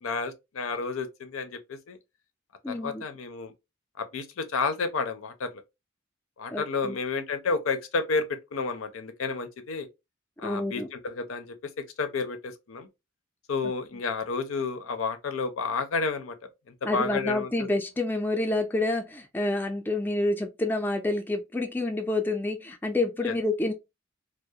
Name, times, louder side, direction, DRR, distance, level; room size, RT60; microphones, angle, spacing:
voice 1, 0.0-2.0 2.7-3.5 4.0-5.6 6.4-9.9 10.4-11.7 12.0-12.9 13.5-16.4 16.8-17.7 23.3-23.4, left 4 dB, 85° left, 0.5 m, -31 dB
voice 2, 2.6-3.0 6.5-7.0 10.4-10.9 16.8-23.7, left 2 dB, 10° left, 0.3 m, -28 dB
2.3 x 2.0 x 2.6 m
head